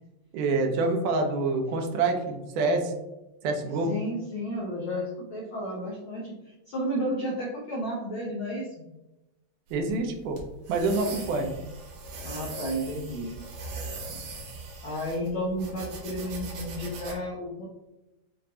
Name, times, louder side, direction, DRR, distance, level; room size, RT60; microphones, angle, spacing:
voice 1, 0.3-2.9 3.4-3.9 9.7-10.4 10.7-11.6, right 3 dB, 90° right, 4 dB, 2.2 m, -26 dB
voice 2, 3.7-8.8 12.2-13.3 14.1-14.2 14.8-17.7, equal, 90° left, -4 dB, 1.1 m, -32 dB
sound 1, 9.7-17.1, right 3 dB, 70° right, 2.0 m, -40 dB
7.3 x 2.5 x 2.8 m, 1.0 s
omnidirectional pair, 3.5 m